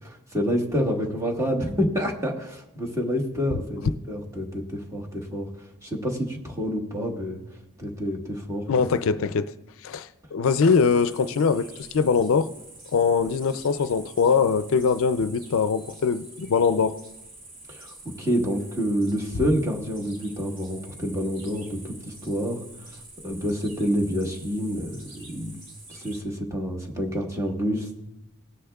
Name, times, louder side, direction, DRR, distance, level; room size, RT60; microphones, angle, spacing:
voice 1, 0.0-5.5 5.8-7.4 7.8-8.7 17.7-22.6 23.2-25.6 25.9-28.0, equal, 15° right, 1.4 m, -28 dB
voice 2, 8.7-9.5 9.8-12.5 12.9-17.0, left 5 dB, 65° left, 0.4 m, -22 dB
sound 1, 10.4-26.2, right 2 dB, 40° right, 2.2 m, -47 dB
18.0 x 10.0 x 2.3 m
head